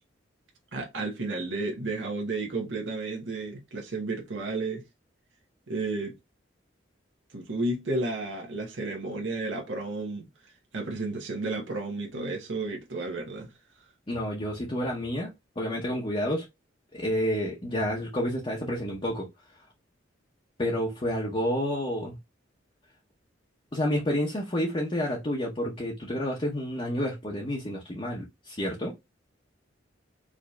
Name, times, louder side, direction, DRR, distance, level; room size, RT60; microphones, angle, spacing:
voice 1, 0.7-4.8 5.7-6.2 7.3-13.5, right 2 dB, 75° right, 1.0 m, -32 dB
voice 2, 14.1-15.3 15.6-16.5 16.9-19.3 20.6-22.2 23.7-29.0, equal, 30° left, 0.8 m, -29 dB
4.8 x 2.7 x 2.3 m
head